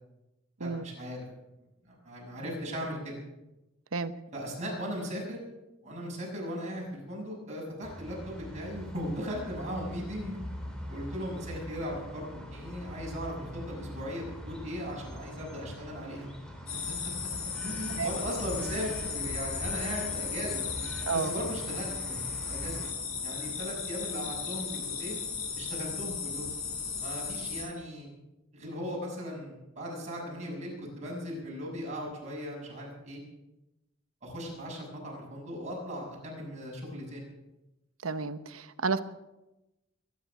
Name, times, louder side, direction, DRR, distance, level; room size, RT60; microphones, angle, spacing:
voice 1, 0.6-1.3 1.8-3.1 4.3-5.4 5.8-10.4 10.9-16.3 16.7-16.8 17.6-20.6 21.1-22.2 22.4-22.8 23.2-25.2 25.6-26.5 27.0-28.1 28.5-33.2 34.2-37.2, equal, 35° right, -3 dB, 6.6 m, -38 dB
sound 1, 7.8-22.9, equal, 5° left, 2.8 m, -43 dB
sound 2, 16.7-27.7, left 6 dB, 90° left, 4.2 m, -36 dB
voice 2, 38.0-39.0, right 4 dB, 80° right, 12 dB, 1.0 m, -31 dB
22.0 x 10.5 x 6.1 m, 0.98 s
head